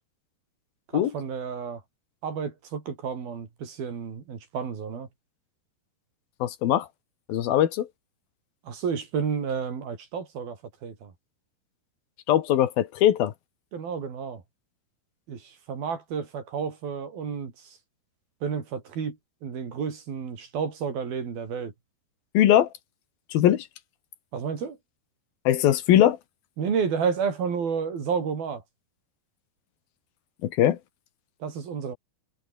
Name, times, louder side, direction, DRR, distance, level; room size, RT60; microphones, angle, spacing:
voice 1, 0.9-1.8 2.2-5.1 8.6-11.1 13.7-14.4 15.3-17.8 18.4-19.2 19.4-21.7 24.3-24.8 26.6-28.6 31.4-32.0, right 6 dB, 65° right, 5.6 m, -31 dB
voice 2, 6.4-6.9 7.3-7.9 12.3-13.3 22.3-22.7 23.3-23.7 25.4-26.2 30.4-30.8, left 11 dB, 65° left, 3.3 m, -21 dB
omnidirectional pair, 4.7 m